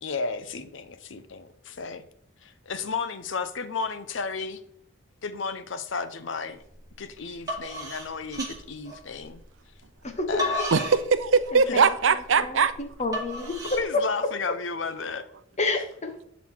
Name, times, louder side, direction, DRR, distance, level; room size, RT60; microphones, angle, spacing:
voice 1, 0.0-2.0 2.4-4.6 5.2-6.6 7.0-8.4 8.7-9.4 10.3-10.6 11.7-11.8 13.6-15.3 15.7-15.8, left 4 dB, 70° left, 0.7 m, -33 dB
sound 1, 6.6-6.9 7.3-9.4 10.0-13.8, left 1 dB, 20° right, 2.6 m, -33 dB
voice 2, 10.0-10.4 11.5-11.8 12.4-13.5 13.9-14.0 15.6-16.2, left 3 dB, 35° left, 1.1 m, -29 dB
voice 3, 10.7-12.7, right 5 dB, 75° right, 0.6 m, -21 dB
11.0 x 4.2 x 4.5 m
head